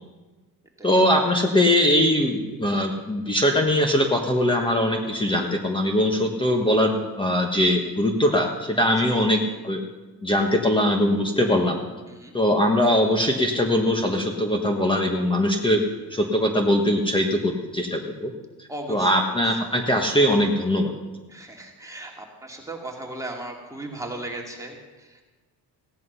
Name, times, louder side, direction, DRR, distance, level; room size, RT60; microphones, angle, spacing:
voice 1, 0.8-9.8 10.2-11.8 12.3-15.8 16.1-18.3 18.6-20.9, left 1 dB, 10° left, 3 dB, 1.3 m, -21 dB
voice 2, 18.7-19.6 21.3-25.2, right 1 dB, 10° right, -1 dB, 2.4 m, -37 dB
16.0 x 10.5 x 5.7 m, 1.2 s
cardioid pair, 115°, 40 cm